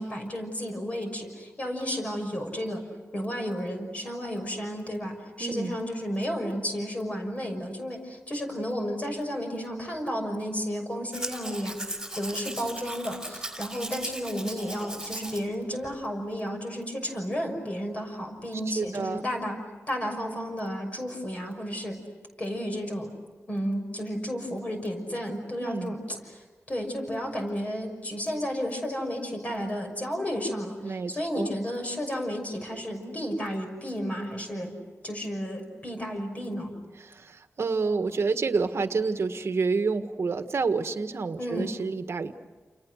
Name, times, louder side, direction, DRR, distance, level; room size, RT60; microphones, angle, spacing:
voice 1, 0.0-2.8 3.1-11.8 12.2-19.6 19.9-22.0 22.4-23.1 23.5-34.7 35.0-36.7 41.4-41.8, equal, 30° left, 3 dB, 6.2 m, -32 dB
voice 2, 5.4-5.8 18.7-19.3 25.6-25.9 30.8-31.5 37.0-42.3, right 4 dB, 60° right, 8 dB, 1.5 m, -29 dB
Domestic sounds home sounds, 11.1-15.4 15.8-15.9, right 1 dB, 10° right, 5.2 m, -37 dB
30.0 x 29.0 x 6.5 m, 1.3 s
wide cardioid pair, 140°, 5 cm